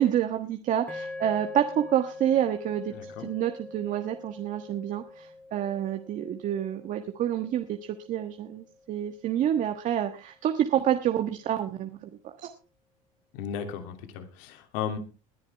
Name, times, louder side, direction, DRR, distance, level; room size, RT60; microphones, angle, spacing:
voice 1, 0.0-7.8 8.1-12.5, right 10 dB, 45° right, 6 dB, 1.4 m, -28 dB
sound 1, 0.9-9.3, left 2 dB, 5° left, 2.2 m, -44 dB
voice 2, 2.9-3.3 13.3-15.0, left 8 dB, 70° left, 6 dB, 2.8 m, -35 dB
20.5 x 10.5 x 3.5 m, 0.34 s
supercardioid pair, 120°, 18 cm